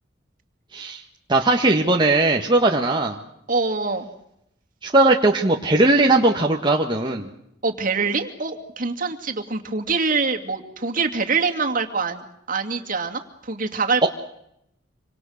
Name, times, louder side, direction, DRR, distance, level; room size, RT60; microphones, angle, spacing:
voice 1, 1.3-3.2 4.8-7.3 14.0-14.1, right 2 dB, 25° right, 1 dB, 1.6 m, -18 dB
voice 2, 3.5-4.1 7.6-14.1, right 4 dB, 45° right, 4 dB, 2.6 m, -25 dB
27.0 x 26.0 x 6.6 m, 0.78 s
head